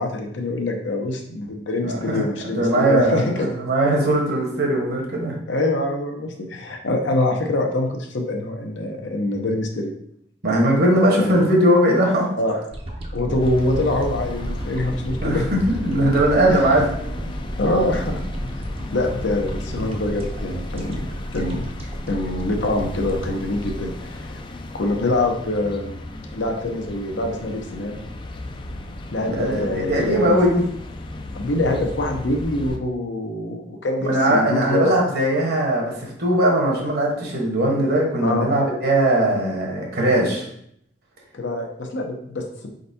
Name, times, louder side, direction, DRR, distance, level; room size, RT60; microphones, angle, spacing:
voice 1, 0.0-3.5 5.5-9.9 11.2-11.3 12.4-12.5 13.1-15.5 16.5-16.7 17.6-18.2 18.5-18.6 18.9-21.0 21.3-21.7 22.1-24.4 24.7-26.0 26.3-28.0 29.1-30.4 31.3-35.0 38.2-38.5 41.3-42.7, left 2 dB, 75° left, 3 dB, 0.7 m, -24 dB
voice 2, 1.8-2.2 2.5-5.3 10.4-12.3 15.2-16.8 19.8-19.9 29.2-30.6 34.0-40.5, right 1 dB, 60° right, -1 dB, 1.2 m, -20 dB
sound 1, 12.7-25.0 25.5-25.6, equal, 35° right, 0.6 m, -32 dB
sound 2, 13.4-32.8, left 1 dB, 25° left, 0.3 m, -35 dB
4.4 x 3.9 x 2.7 m, 0.71 s
head